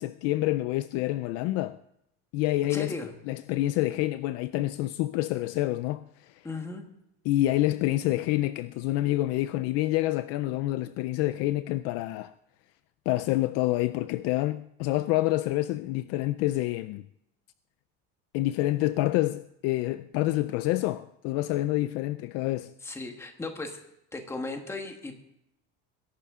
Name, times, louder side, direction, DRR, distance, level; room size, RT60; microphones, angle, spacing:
voice 1, 0.0-1.8 2.3-2.9 3.3-6.4 7.3-12.3 13.1-17.0 18.3-22.7, left 16 dB, 50° left, 0.4 m, -27 dB
voice 2, 2.7-3.1 6.4-6.8 22.8-23.8 24.1-25.2, left 3 dB, 10° left, 1.3 m, -36 dB
21.0 x 11.5 x 3.6 m
cardioid pair, 180°, 31 cm